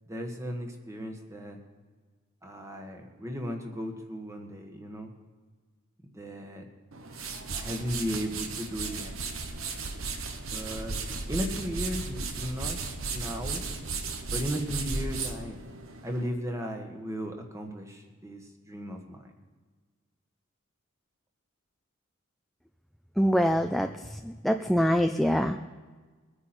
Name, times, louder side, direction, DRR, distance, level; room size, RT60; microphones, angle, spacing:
voice 1, 0.1-1.6 2.4-5.1 6.1-6.6 7.5-9.1 10.5-10.9 11.3-12.8 13.1-13.6 14.3-15.6 16.0-18.4 18.7-19.3, equal, 15° right, 3 dB, 1.6 m, -35 dB
sound 1, 6.9-16.3, right 4 dB, 75° right, 1.2 m, -35 dB
voice 2, 23.2-23.9 24.2-25.6, equal, ahead, 6 dB, 0.4 m, -24 dB
22.5 x 9.7 x 4.4 m, 1.4 s
head